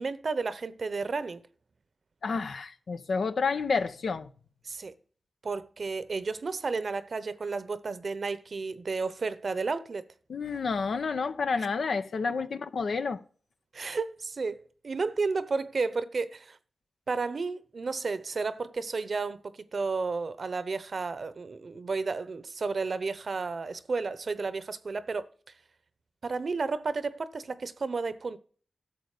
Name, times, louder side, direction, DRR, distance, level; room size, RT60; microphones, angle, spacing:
voice 1, 0.0-1.4 4.6-4.9 5.4-10.0 11.6-11.7 13.7-16.6 17.1-25.3 26.2-28.4, right 4 dB, 60° right, 0.8 m, -32 dB
voice 2, 2.2-4.3 10.3-13.2, left 4 dB, 75° left, 0.7 m, -30 dB
12.0 x 6.8 x 4.9 m
cardioid pair, 55°, 0 cm